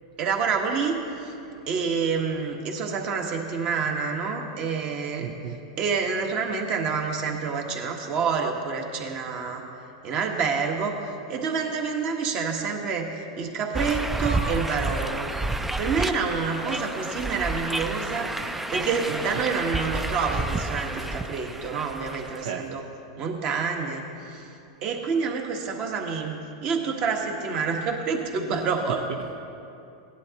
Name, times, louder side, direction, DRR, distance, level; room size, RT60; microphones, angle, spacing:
voice 1, 0.2-1.3 1.7-5.3 5.8-9.6 10.0-10.9 11.3-13.1 13.4-15.3 15.8-18.3 18.7-22.8 23.2-24.5 24.8-29.0, right 5 dB, 40° right, 2 dB, 1.5 m, -28 dB
voice 2, 5.2-5.6 20.9-21.0 22.4-22.6 28.1-28.2 28.9-29.4, right 7 dB, 75° right, 3 dB, 0.8 m, -35 dB
sound 1, 13.7-22.5, right 2 dB, 5° right, 0.4 m, -30 dB
17.5 x 11.0 x 3.0 m, 2.7 s
hypercardioid pair, 125°, 3 cm